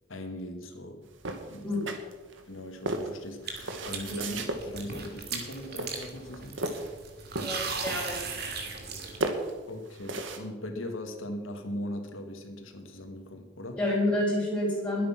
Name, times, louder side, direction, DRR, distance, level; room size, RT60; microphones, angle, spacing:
voice 1, 0.1-1.1 1.5-1.8 2.5-6.7 9.7-13.8, left 1 dB, 85° left, 5 dB, 2.1 m, -39 dB
sound 1, 1.2-2.4 2.9-4.6 5.3-5.5 5.8-7.0 7.3-8.2 8.5-8.9 9.2-10.4, right 2 dB, 70° right, 1.8 m, -34 dB
sound 2, 3.5-9.2, right 4 dB, 50° right, 2.7 m, -38 dB
voice 2, 7.4-8.2 13.8-15.1, left 1 dB, 5° left, -5 dB, 5.6 m, -28 dB
21.5 x 8.8 x 6.0 m, 1.3 s
head